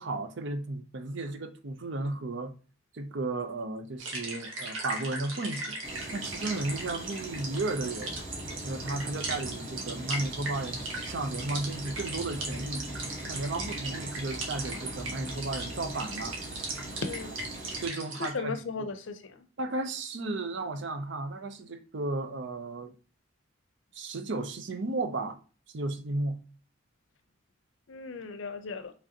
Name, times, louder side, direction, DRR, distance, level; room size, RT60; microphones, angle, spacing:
voice 1, 0.0-2.5 2.9-5.8 6.1-8.1 8.6-12.8 13.3-16.4 17.8-18.6 19.6-22.9 23.9-25.4 25.7-26.4, right 2 dB, 65° right, 0.6 m, -34 dB
sound 1, 4.0-18.3, right 2 dB, 85° right, 1.3 m, -38 dB
sound 2, 5.8-17.9, right 1 dB, 40° right, 1.3 m, -43 dB
sound 3, 8.0-17.3, equal, ahead, 0.5 m, -45 dB
voice 2, 17.0-17.4 18.2-19.5 27.9-28.9, left 4 dB, 75° left, 0.6 m, -36 dB
4.9 x 3.4 x 2.8 m
head